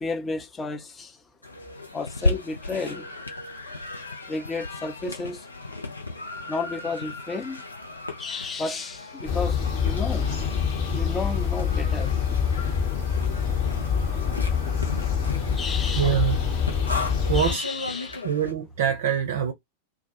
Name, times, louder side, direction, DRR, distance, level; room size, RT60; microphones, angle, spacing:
voice 1, 0.0-1.1 1.9-3.1 4.3-5.4 6.5-7.6 8.2-10.2 10.9-12.1 15.6-16.3 17.3-18.2, left 3 dB, 20° left, 0.5 m, -32 dB
sound 1, 1.4-18.5, left 2 dB, 80° left, 0.6 m, -35 dB
sound 2, 9.3-17.5, left 7 dB, 40° left, 0.9 m, -25 dB
voice 2, 15.9-16.6 17.3-17.7 18.2-19.5, right 8 dB, 60° right, 0.5 m, -24 dB
2.2 x 2.1 x 2.8 m
figure-of-eight pair, 90°, 0 cm